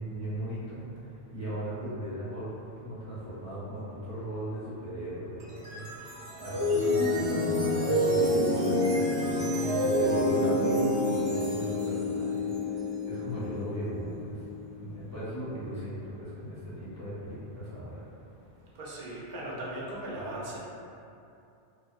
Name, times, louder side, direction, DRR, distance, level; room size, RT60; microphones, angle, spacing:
voice 1, 0.0-2.5 2.8-14.4 14.8-18.0, equal, 20° right, -13 dB, 0.6 m, -38 dB
sound 1, 5.4-14.7, left 1 dB, 80° right, 1.0 m, -28 dB
voice 2, 18.8-20.6, right 1 dB, 60° right, -5 dB, 0.6 m, -38 dB
2.5 x 2.1 x 2.3 m, 2.7 s
omnidirectional pair, 1.2 m